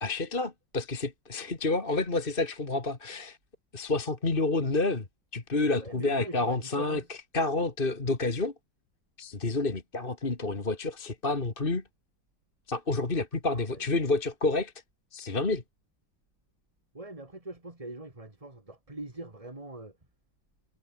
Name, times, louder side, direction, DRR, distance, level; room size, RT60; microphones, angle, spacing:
voice 1, 0.0-3.4 3.7-5.1 5.3-8.5 9.2-11.8 12.7-14.7 15.1-15.6, left 3 dB, 30° left, 2.3 m, -29 dB
voice 2, 5.7-7.1 13.5-13.8 16.9-20.0, right 2 dB, 15° right, 3.0 m, -43 dB
omnidirectional pair, 2.0 m